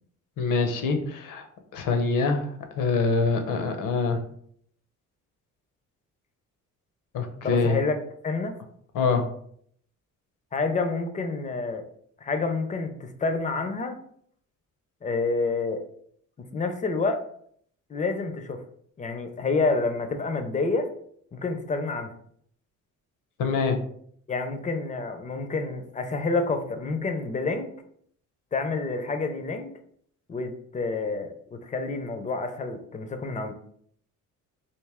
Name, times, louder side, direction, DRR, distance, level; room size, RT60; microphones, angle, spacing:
voice 1, 0.4-1.4 1.7-2.5 2.8-4.2 7.1-7.8 8.9-9.2 23.4-23.8, left 4 dB, 80° left, 6 dB, 0.7 m, -24 dB
voice 2, 7.4-8.0 8.2-8.6 10.5-11.9 12.2-14.0 15.0-15.8 16.5-17.2 17.9-18.6 19.0-20.9 21.3-22.1 24.3-27.7 28.5-29.7 30.3-33.5, left 3 dB, 25° left, 7 dB, 0.4 m, -28 dB
3.2 x 2.6 x 3.5 m, 0.64 s
cardioid pair, 125°, 31 cm